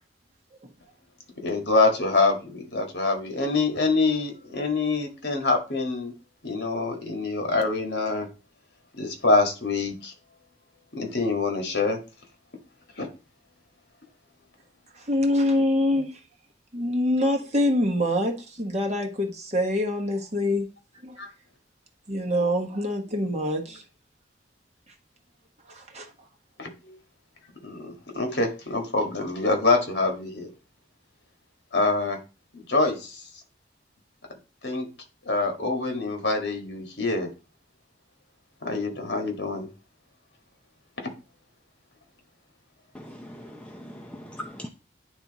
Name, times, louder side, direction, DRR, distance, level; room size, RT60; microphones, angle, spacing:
voice 1, 1.4-6.1 6.4-8.3 8.9-10.1 10.9-12.0 13.0-13.1 21.2-21.3 26.6-27.0 27.6-30.5 31.7-32.2 32.5-33.2 34.6-34.9 35.3-37.3 38.6-39.7 41.0-41.1, left 3 dB, 65° left, 1.7 m, -25 dB
voice 2, 14.9-16.2 16.7-20.7 21.0-21.2 22.1-23.8 24.9-25.0 25.6-26.3, left 1 dB, 40° right, 1.3 m, -25 dB
voice 3, 42.9-44.7, left 1 dB, 5° left, 0.6 m, -40 dB
10.0 x 3.4 x 4.0 m
head